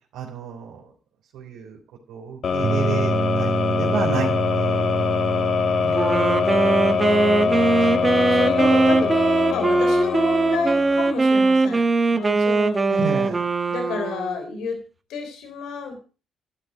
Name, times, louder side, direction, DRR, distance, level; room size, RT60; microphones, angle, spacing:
voice 1, 0.1-0.8 1.3-1.8 2.1-4.8 5.8-5.9 12.9-13.4, right 6 dB, 90° right, -3 dB, 3.7 m, -30 dB
sound 1, 2.4-11.4, left 6 dB, 55° left, 1.6 m, -23 dB
sound 2, 2.6-9.3, right 6 dB, 50° right, 0.7 m, -29 dB
Wind instrument woodwind instrument, 5.9-14.6, right 3 dB, 25° right, 1.6 m, -20 dB
voice 2, 7.0-9.1 9.5-12.8 13.7-14.8 15.1-16.0, left 4 dB, 85° left, 6 dB, 3.6 m, -31 dB
12.5 x 12.5 x 5.1 m, 0.36 s
cardioid pair, 90°, 0 cm